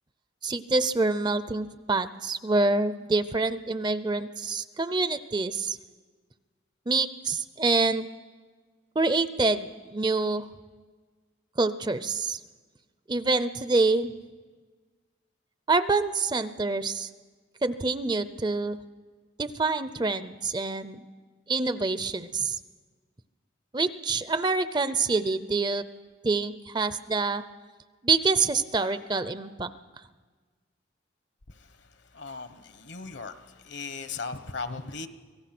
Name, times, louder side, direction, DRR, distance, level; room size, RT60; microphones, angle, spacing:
voice 1, 0.4-5.8 6.9-8.1 9.0-10.5 11.6-12.4 13.1-14.1 15.7-17.1 17.6-18.8 19.4-21.0 21.5-22.6 23.7-25.8 26.2-27.4 28.0-29.7, right 3 dB, 20° right, 13 dB, 0.5 m, -26 dB
voice 2, 32.1-33.3 33.6-35.1, left 4 dB, 65° left, 10 dB, 1.1 m, -37 dB
25.0 x 17.5 x 6.0 m, 1.4 s
head